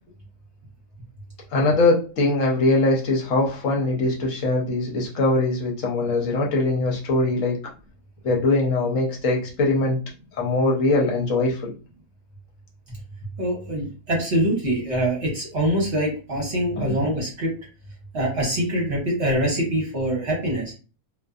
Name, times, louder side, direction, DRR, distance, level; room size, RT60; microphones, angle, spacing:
voice 1, 1.5-7.6 8.2-10.0 10.3-11.7 16.7-17.1, left 2 dB, 65° left, -1 dB, 1.0 m, -22 dB
voice 2, 13.4-17.5 18.1-20.7, right 1 dB, 50° right, -2 dB, 1.2 m, -24 dB
2.5 x 2.5 x 2.3 m, 0.35 s
omnidirectional pair, 1.5 m